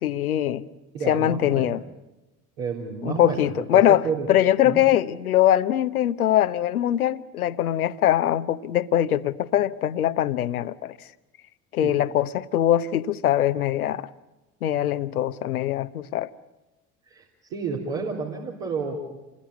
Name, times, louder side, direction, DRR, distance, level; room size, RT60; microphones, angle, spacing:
voice 1, 0.0-0.6 1.1-1.8 3.0-11.0 11.7-14.1 14.6-16.3, left 11 dB, 75° left, 0.9 m, -22 dB
voice 2, 0.9-1.7 2.6-4.3 4.6-4.8 17.1-19.2, right 5 dB, 65° right, 3.8 m, -31 dB
28.5 x 21.0 x 8.3 m
figure-of-eight pair, 50°, 44 cm